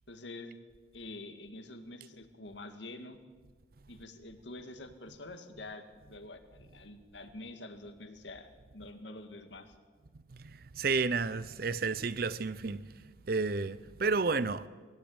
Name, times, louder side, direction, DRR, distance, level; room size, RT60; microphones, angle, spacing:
voice 1, 0.1-0.6 0.9-3.2 3.9-9.8, left 2 dB, 75° left, 2.1 m, -47 dB
voice 2, 10.3-14.7, right 4 dB, 55° right, 0.6 m, -32 dB
22.0 x 15.5 x 8.8 m
head